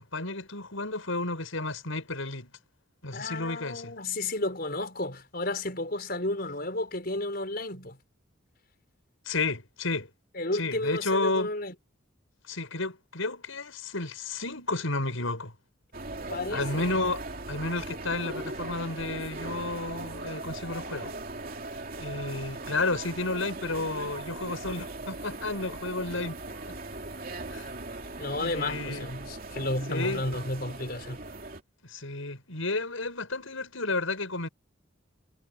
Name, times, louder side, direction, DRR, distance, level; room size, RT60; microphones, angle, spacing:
voice 1, 0.0-2.5 3.0-3.9 9.2-10.1 10.5-11.5 12.4-15.5 16.5-21.1 22.0-26.4 26.7-26.8 27.5-27.7 28.4-29.1 29.9-30.2 31.8-34.5, left 2 dB, 80° left, 6.7 m, -32 dB
voice 2, 3.1-8.0 10.3-11.7 16.3-16.9 28.2-31.2, left 2 dB, 50° left, 5.8 m, -32 dB
Walking around a Noisy Food Food Hall, 15.9-31.6, right 2 dB, 45° right, 3.0 m, -39 dB
head